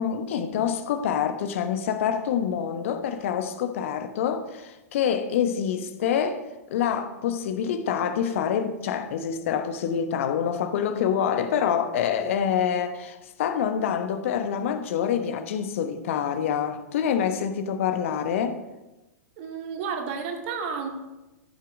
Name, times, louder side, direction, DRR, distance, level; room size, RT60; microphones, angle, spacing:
voice 1, 0.0-6.4 6.7-18.6, left 8 dB, 55° left, 1.0 m, -26 dB
voice 2, 19.4-20.9, right 6 dB, 45° right, 2.0 m, -31 dB
13.0 x 7.7 x 5.1 m
figure-of-eight pair, 100°, 9 cm